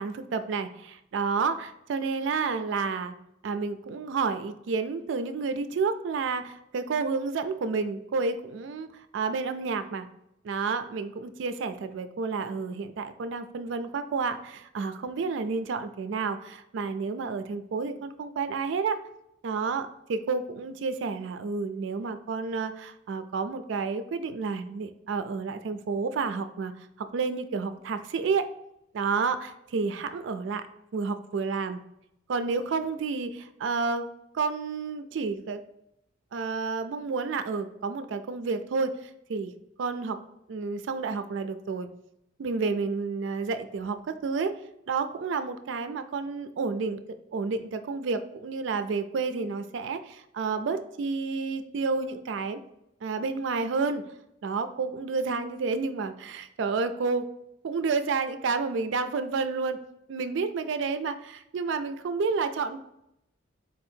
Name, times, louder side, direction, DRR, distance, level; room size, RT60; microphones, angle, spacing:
voice 1, 0.0-3.1 3.4-10.1 10.4-19.0 19.4-28.5 28.9-30.7 30.9-31.8 32.3-34.1 34.3-35.6 36.3-40.2 40.5-41.9 42.4-44.6 44.9-47.0 47.3-52.6 53.0-54.0 54.4-57.3 57.6-59.8 60.1-62.8, right 4 dB, 70° right, 10 dB, 0.3 m, -30 dB
4.2 x 2.8 x 4.2 m, 0.81 s
head